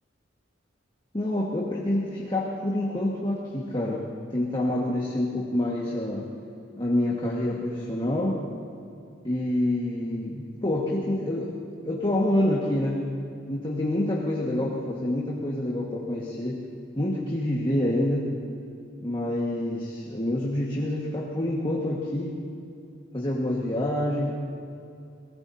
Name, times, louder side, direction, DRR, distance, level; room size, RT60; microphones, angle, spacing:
voice 1, 1.1-4.0 4.3-6.3 6.8-8.4 9.2-11.5 11.8-13.0 13.5-16.6 17.0-18.3 19.0-22.4 23.1-24.3, left 1 dB, 25° left, -4 dB, 1.6 m, -27 dB
23.0 x 18.0 x 2.8 m, 2.6 s
head